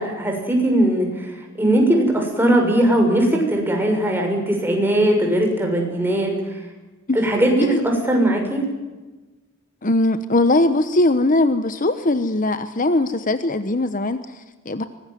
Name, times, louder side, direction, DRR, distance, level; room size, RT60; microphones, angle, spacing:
voice 1, 0.0-6.4 7.1-8.7, right 1 dB, 10° right, 2 dB, 6.8 m, -19 dB
voice 2, 9.8-14.8, left 2 dB, 40° left, 11 dB, 1.1 m, -20 dB
23.5 x 19.5 x 9.3 m, 1.2 s
head